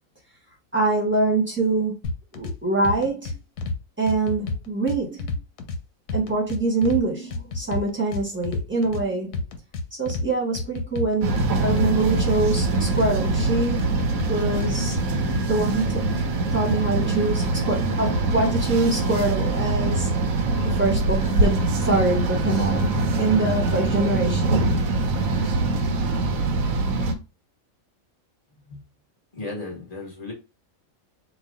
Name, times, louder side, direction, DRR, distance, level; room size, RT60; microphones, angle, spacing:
voice 1, 0.7-1.9 2.3-3.4 4.0-5.3 6.1-9.4 10.0-14.0 14.3-15.0 15.4-16.0 16.5-20.1 20.6-22.9 23.2-24.6, right 3 dB, 10° right, 1.3 m, -24 dB
sound 1, 2.0-2.5 2.8-3.8 4.1-5.8 6.1-7.0 7.3-9.0 9.3-10.3 10.5-12.3 12.6-13.5 13.8-15.0, left 3 dB, 80° left, 1.1 m, -29 dB
sound 2, 11.2-27.1, right 2 dB, 80° right, 1.1 m, -23 dB
voice 2, 29.3-30.3, left 3 dB, 30° left, 1.5 m, -35 dB
3.1 x 2.4 x 3.7 m
omnidirectional pair, 1.4 m